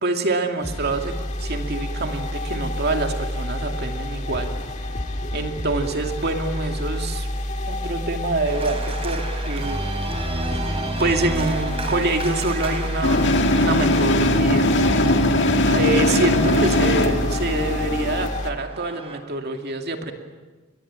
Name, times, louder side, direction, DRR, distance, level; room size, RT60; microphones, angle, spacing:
voice 1, 0.0-4.5 5.3-7.3 7.7-9.8 10.5-14.7 15.6-20.1, right 2 dB, 45° right, 4 dB, 2.5 m, -26 dB
sound 1, 0.6-18.5, left 1 dB, 35° left, 1.8 m, -29 dB
Organ, 8.4-19.2, right 2 dB, 25° right, 3.1 m, -33 dB
sound 2, 13.0-18.3, left 1 dB, 55° left, 2.1 m, -20 dB
28.5 x 22.5 x 8.8 m, 1.3 s
head